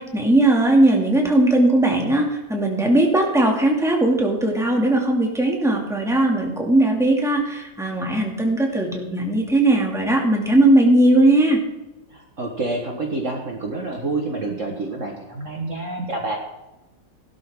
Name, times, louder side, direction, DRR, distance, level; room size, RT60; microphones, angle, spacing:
voice 1, 0.0-11.6, right 1 dB, ahead, 0 dB, 2.4 m, -18 dB
voice 2, 12.1-16.4, right 2 dB, 45° right, 1 dB, 1.8 m, -28 dB
16.5 x 12.0 x 3.8 m, 0.99 s
omnidirectional pair, 2.0 m